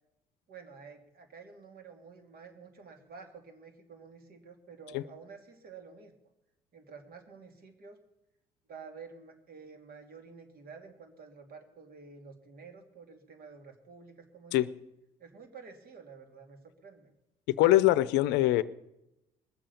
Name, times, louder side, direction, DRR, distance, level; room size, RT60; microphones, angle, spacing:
voice 1, 0.5-6.1 6.7-8.0 8.7-14.6 15.2-17.1, right 5 dB, 55° right, 5 dB, 2.9 m, -50 dB
voice 2, 17.5-18.6, left 15 dB, 70° left, 18 dB, 0.6 m, -23 dB
20.5 x 7.6 x 6.9 m, 0.88 s
hypercardioid pair, 55°, 18 cm